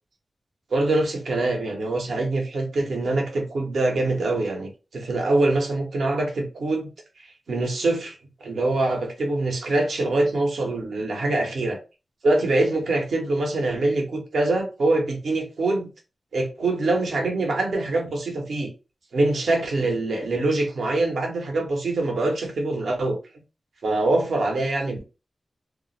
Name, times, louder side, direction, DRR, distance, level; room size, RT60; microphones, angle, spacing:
voice 1, 0.7-6.9 7.5-11.8 12.2-15.9 16.3-18.7 19.1-23.2 23.8-25.0, right 2 dB, 90° right, 0.8 m, -24 dB
2.4 x 2.0 x 3.8 m
cardioid pair, 50°, 0 cm